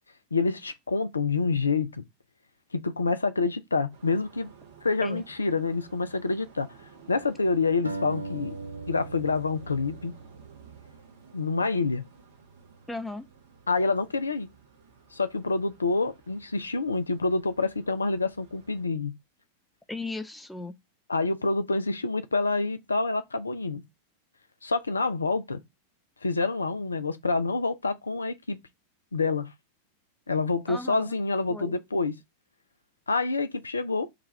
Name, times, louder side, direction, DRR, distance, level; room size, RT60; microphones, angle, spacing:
voice 1, 0.3-2.0 2.7-4.5 4.8-6.7 7.1-8.5 8.9-10.1 11.3-12.0 13.7-14.5 15.1-19.1 21.1-23.8 24.6-25.6 26.2-28.6 29.1-29.5 30.3-32.1 33.1-34.1, left 3 dB, 75° left, 0.4 m, -27 dB
sound 1, 3.9-18.8, right 7 dB, 60° right, 0.8 m, -53 dB
sound 2, 7.8-11.1, right 3 dB, 85° right, 0.3 m, -39 dB
voice 2, 12.9-13.3 19.9-20.8 30.7-31.2 31.5-31.8, left 2 dB, 5° left, 0.4 m, -36 dB
4.7 x 2.3 x 4.0 m
figure-of-eight pair, 90°, 0 cm